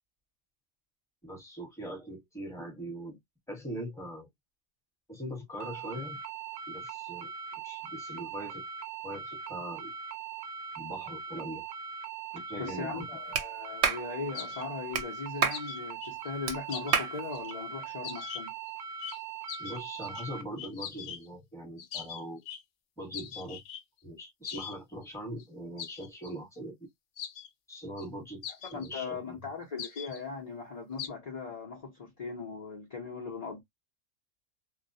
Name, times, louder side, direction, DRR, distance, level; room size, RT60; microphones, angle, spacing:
voice 1, 1.2-3.2 3.5-4.3 5.1-6.2 6.7-7.3 7.6-8.6 9.0-9.9 10.8-11.6 12.3-13.1 19.6-22.4 23.0-23.6 24.0-26.9 27.7-28.4 28.7-29.4, equal, 5° left, 0.9 m, -41 dB
sound 1, 5.6-20.4, right 6 dB, 90° right, 1.0 m, -41 dB
voice 2, 12.6-18.5 28.6-33.6, left 4 dB, 40° left, 0.5 m, -39 dB
Clapping, 13.3-13.5 13.8-14.0 14.9-15.1 15.4-15.6 16.5-16.6 16.9-17.1, right 6 dB, 65° right, 0.8 m, -27 dB
sound 2, 14.3-14.6 15.3-17.0 17.3-17.5 18.0-18.7 19.0-19.2 19.5-20.2 20.6-21.3 21.8-22.6 23.1-23.8 24.4-24.8 25.0-25.1 25.4-25.5 25.8-26.3 27.2-27.5 28.0-28.1 28.4-28.9 29.8-30.2 31.0-31.1, left 8 dB, 90° left, 1.0 m, -41 dB
2.3 x 2.1 x 2.5 m
omnidirectional pair, 1.3 m